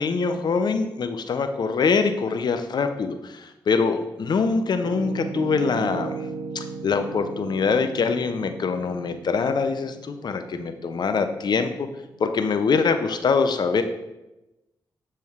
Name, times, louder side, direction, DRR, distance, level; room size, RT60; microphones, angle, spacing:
voice 1, 0.0-6.2 6.5-11.9 12.2-13.8, left 5 dB, 60° left, 8 dB, 0.5 m, -24 dB
Piano, 4.8-12.7, right 5 dB, 80° right, 0.4 m, -37 dB
7.0 x 3.1 x 2.4 m, 0.97 s
supercardioid pair, 50°, 9 cm